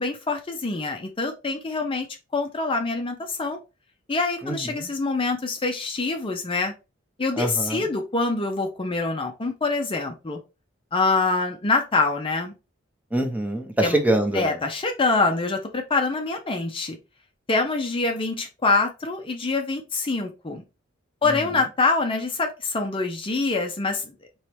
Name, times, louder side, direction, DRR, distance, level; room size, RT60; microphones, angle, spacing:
voice 1, 0.0-2.1 2.3-3.6 4.1-6.7 7.2-10.4 10.9-12.5 13.8-14.0 14.3-17.0 17.5-20.6 21.2-24.1, left 3 dB, 25° left, 4 dB, 0.5 m, -25 dB
voice 2, 4.4-4.9 7.4-7.9 13.1-14.5, right 1 dB, 10° right, 3 dB, 0.8 m, -24 dB
4.4 x 3.1 x 3.3 m, 0.28 s
head